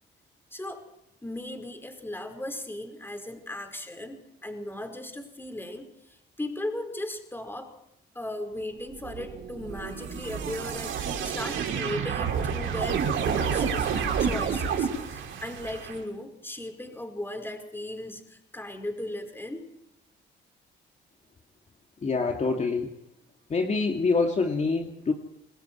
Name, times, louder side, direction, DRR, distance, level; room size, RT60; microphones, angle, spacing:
voice 1, 0.5-0.8 1.2-7.7 8.2-19.7, left 1 dB, 10° left, 6 dB, 5.1 m, -37 dB
sound 1, 8.9-16.0, right 7 dB, 80° right, 5.8 m, -29 dB
voice 2, 22.0-22.9 23.5-25.1, left 4 dB, 35° left, 2 dB, 2.7 m, -25 dB
27.5 x 20.0 x 4.7 m, 0.82 s
cardioid pair, 90°, 20 cm